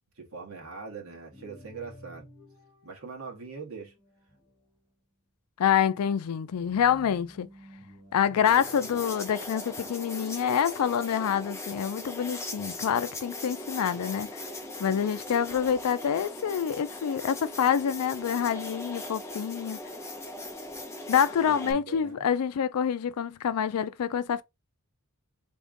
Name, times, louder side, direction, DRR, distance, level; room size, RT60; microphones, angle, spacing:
voice 1, 0.2-2.3 2.8-3.9 21.4-22.2, right 4 dB, 70° right, 1.6 m, -42 dB
sound 1, 1.3-4.8 6.4-9.0, equal, 20° right, 2.1 m, -52 dB
voice 2, 5.6-7.5 8.1-14.4 14.8-19.8 21.1-24.4, left 8 dB, 90° left, 0.4 m, -27 dB
sound 2, 8.4-21.7, left 2 dB, 10° left, 0.9 m, -39 dB
3.6 x 3.6 x 3.7 m
head